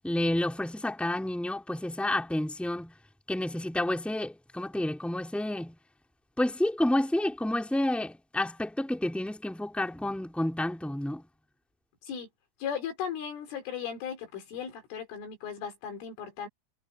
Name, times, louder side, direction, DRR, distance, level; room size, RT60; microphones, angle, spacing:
voice 1, 0.0-2.9 3.3-5.7 6.4-11.2, left 1 dB, ahead, 0.7 m, -30 dB
voice 2, 12.6-16.5, left 8 dB, 75° left, 6.4 m, -36 dB
omnidirectional pair, 5.7 m